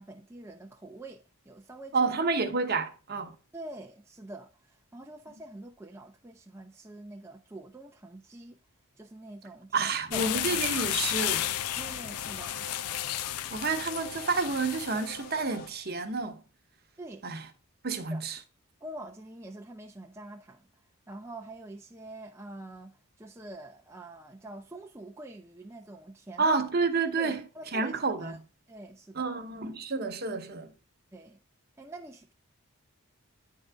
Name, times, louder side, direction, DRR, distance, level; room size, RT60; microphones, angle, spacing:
voice 1, 0.0-2.1 3.5-8.6 9.0-10.4 11.8-12.7 17.0-17.3 18.1-18.2 18.8-20.7 21.1-26.5 27.2-28.4 28.7-29.3 31.1-31.4 31.8-32.3, right 2 dB, 10° right, 0.5 m, -45 dB
voice 2, 1.9-3.4 9.7-11.5 13.5-16.4 17.2-17.4 17.8-18.4 26.4-27.4 27.7-28.4 29.1-30.7, right 4 dB, 45° right, 0.9 m, -29 dB
sound 1, 10.1-15.2, left 13 dB, 85° left, 0.4 m, -33 dB
sound 2, 10.2-15.7, left 2 dB, 40° left, 0.9 m, -46 dB
9.9 x 3.8 x 3.4 m
head